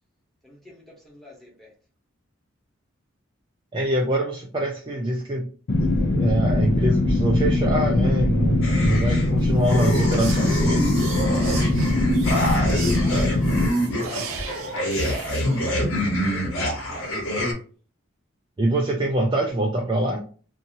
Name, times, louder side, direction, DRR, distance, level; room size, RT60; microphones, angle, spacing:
voice 1, 0.4-1.7 11.4-12.0 12.4-14.2 16.2-17.2, left 2 dB, ahead, 0.9 m, -48 dB
voice 2, 3.7-10.9 18.6-20.2, right 1 dB, 20° right, 0.3 m, -24 dB
sound 1, 5.7-13.7, left 2 dB, 55° left, 0.4 m, -21 dB
sound 2, 8.6-9.3 9.6-17.5, equal, 75° left, 1.0 m, -26 dB
sound 3, 9.4-15.7, right 4 dB, 75° right, 0.7 m, -37 dB
2.7 x 2.6 x 2.7 m
head